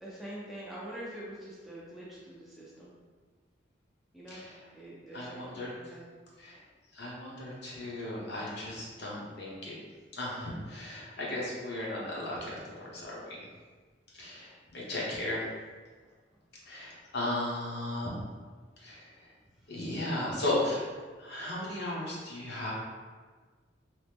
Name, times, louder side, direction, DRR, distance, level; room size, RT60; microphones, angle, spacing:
voice 1, 0.0-2.9 4.1-4.4 4.7-6.2, right 1 dB, ahead, -8 dB, 0.5 m, -45 dB
voice 2, 4.3-4.6 5.1-5.7 6.4-6.6 6.9-9.8 10.1-13.4 14.2-15.4 16.7-18.2 18.8-19.1 19.7-20.9 21.2-22.7, left 1 dB, 65° left, -6 dB, 0.8 m, -35 dB
3.0 x 2.0 x 3.4 m, 1.5 s
head